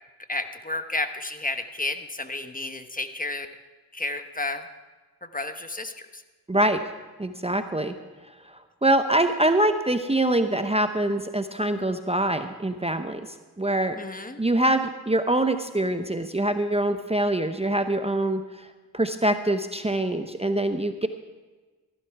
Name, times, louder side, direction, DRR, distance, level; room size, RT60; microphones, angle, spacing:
voice 1, 0.3-3.5 3.9-4.6 5.2-6.2 14.0-14.4, left 2 dB, 20° left, 8 dB, 1.1 m, -31 dB
voice 2, 6.5-6.8 7.2-7.9 8.8-13.2 13.6-14.0 14.4-18.4 18.9-21.1, right 1 dB, 15° right, 8 dB, 0.9 m, -24 dB
15.5 x 11.5 x 4.7 m, 1.3 s
cardioid pair, 40°, 39 cm